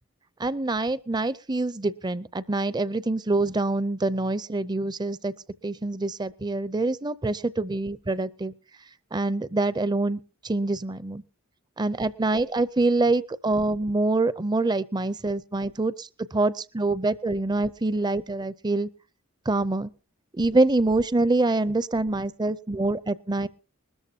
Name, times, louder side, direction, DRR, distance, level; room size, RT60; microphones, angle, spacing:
voice 1, 0.4-5.3 5.6-8.5 9.1-11.2 11.8-18.9 19.5-19.9 20.4-23.5, right 2 dB, 20° right, 17 dB, 0.5 m, -25 dB
20.5 x 13.5 x 2.8 m, 0.35 s
head